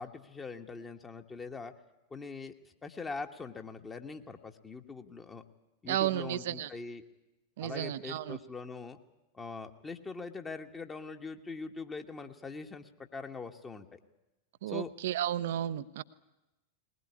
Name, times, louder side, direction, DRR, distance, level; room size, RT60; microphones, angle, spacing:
voice 1, 0.0-1.7 2.1-5.4 5.8-7.0 7.6-9.0 9.3-14.0 14.7-14.9, left 4 dB, 15° left, 5 dB, 1.5 m, -42 dB
voice 2, 5.9-6.7 7.6-8.4 14.6-16.0, right 12 dB, 55° right, 14 dB, 0.8 m, -33 dB
20.0 x 20.0 x 9.7 m, 0.98 s
figure-of-eight pair, 90°, 0 cm